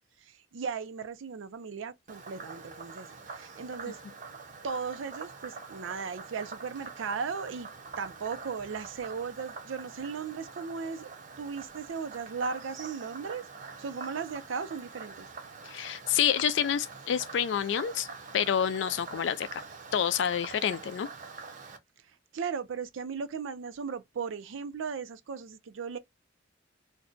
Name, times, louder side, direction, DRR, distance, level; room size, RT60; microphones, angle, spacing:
voice 1, 0.2-4.0 4.6-7.7 8.0-15.3 22.3-26.0, right 5 dB, 85° right, 0.4 m, -37 dB
Frog, 2.1-21.8, right 4 dB, 40° right, 0.6 m, -45 dB
voice 2, 15.6-18.1 18.3-19.6 19.9-21.1, left 8 dB, 65° left, 0.3 m, -28 dB
2.6 x 2.1 x 3.7 m
head